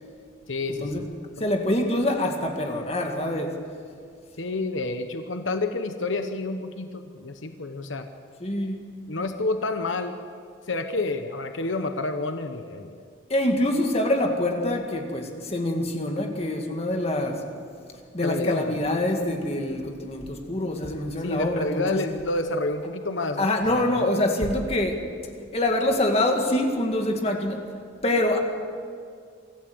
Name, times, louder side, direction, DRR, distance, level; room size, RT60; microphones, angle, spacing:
voice 1, 0.5-1.1 1.4-1.5 4.4-8.1 9.1-10.1 10.7-13.0 18.2-18.8 21.2-24.2, left 2 dB, 90° left, 7 dB, 1.1 m, -29 dB
voice 2, 1.4-3.6 8.4-8.8 13.3-17.5 18.1-22.0 23.4-25.0 25.5-27.7 28.0-28.4, left 1 dB, 30° left, 3 dB, 2.1 m, -25 dB
24.5 x 14.0 x 7.9 m, 2.2 s
head